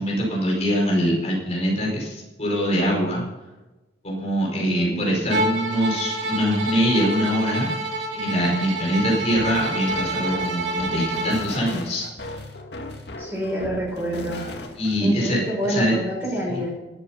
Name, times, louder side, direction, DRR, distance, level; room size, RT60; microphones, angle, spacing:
voice 1, 0.0-3.2 4.0-7.7 8.1-12.1 14.7-15.9 16.4-16.6, equal, 35° left, -3 dB, 4.7 m, -23 dB
voice 2, 4.5-5.0 13.2-14.4 15.0-16.7, right 1 dB, 15° right, -3 dB, 6.1 m, -27 dB
Bowed string instrument, 5.3-11.5, right 2 dB, 80° right, 2.4 m, -28 dB
sound 1, 9.3-15.0, left 1 dB, 60° left, 2.1 m, -37 dB
13.5 x 11.5 x 5.6 m, 1.1 s
head